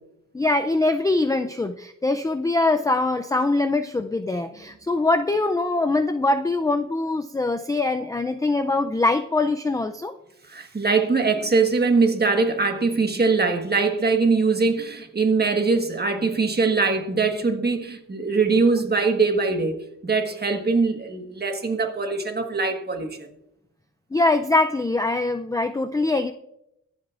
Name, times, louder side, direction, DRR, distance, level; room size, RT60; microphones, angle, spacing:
voice 1, 0.3-10.1 24.1-26.3, left 2 dB, 10° left, 0.3 m, -23 dB
voice 2, 10.5-23.2, right 4 dB, 30° right, 1.4 m, -22 dB
23.5 x 8.0 x 2.5 m
wide cardioid pair, 120°, 31 cm